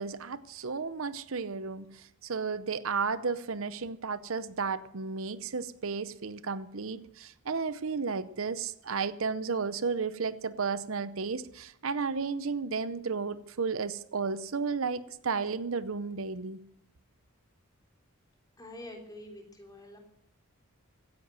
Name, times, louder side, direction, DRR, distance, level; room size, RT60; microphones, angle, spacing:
voice 1, 0.0-16.6, right 5 dB, 65° right, 0.7 m, -33 dB
voice 2, 18.6-20.0, left 1 dB, 15° left, 3.4 m, -46 dB
16.0 x 10.5 x 7.6 m
head